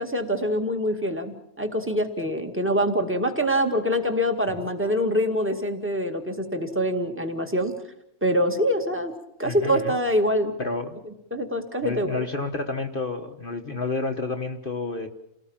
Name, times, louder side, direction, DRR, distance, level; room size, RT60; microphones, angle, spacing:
voice 1, 0.0-7.7 8.2-9.1 9.4-10.5 11.3-12.2, equal, 10° right, 5 dB, 2.1 m, -25 dB
voice 2, 9.4-10.0 10.6-11.0 11.8-15.1, left 3 dB, 35° left, 5 dB, 1.4 m, -30 dB
28.5 x 18.5 x 7.3 m, 0.79 s
omnidirectional pair, 1.6 m